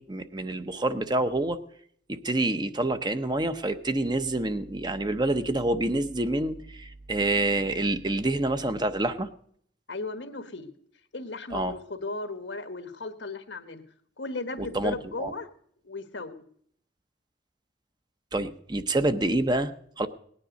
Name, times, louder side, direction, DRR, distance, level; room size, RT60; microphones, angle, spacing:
voice 1, 0.0-1.6 2.1-9.3 11.5-11.7 14.6-15.3 18.3-20.1, right 2 dB, 25° right, 10 dB, 0.7 m, -27 dB
voice 2, 9.9-10.7 11.1-13.8 14.2-15.5 15.8-16.4, left 3 dB, 90° left, 8 dB, 1.4 m, -36 dB
18.5 x 9.8 x 5.1 m, 0.63 s
head